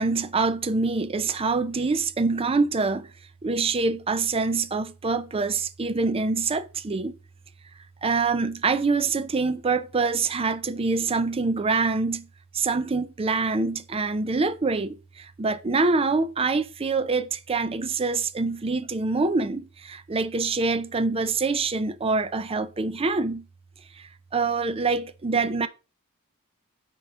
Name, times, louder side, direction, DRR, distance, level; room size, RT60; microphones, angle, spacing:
voice 1, 0.0-3.1 3.4-7.1 8.0-12.3 12.5-23.4 24.0-25.7, right 4 dB, 25° right, 0.5 m, -25 dB
8.9 x 4.6 x 3.7 m
head